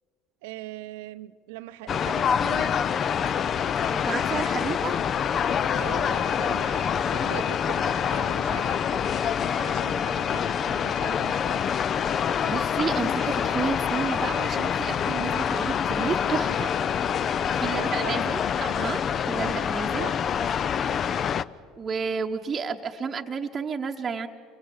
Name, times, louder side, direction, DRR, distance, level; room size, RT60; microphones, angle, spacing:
voice 1, 0.4-2.9 5.7-9.0 9.4-11.6 17.5-18.4 20.0-20.5, right 14 dB, 65° right, 14 dB, 0.7 m, -41 dB
sound 1, 1.9-21.4, left 8 dB, 40° left, 0.5 m, -26 dB
voice 2, 3.9-5.0 12.0-16.7 17.5-20.1 21.8-24.3, right 5 dB, 30° right, 2 dB, 1.0 m, -31 dB
29.5 x 23.5 x 5.1 m, 2.4 s
figure-of-eight pair, 65°, 0 cm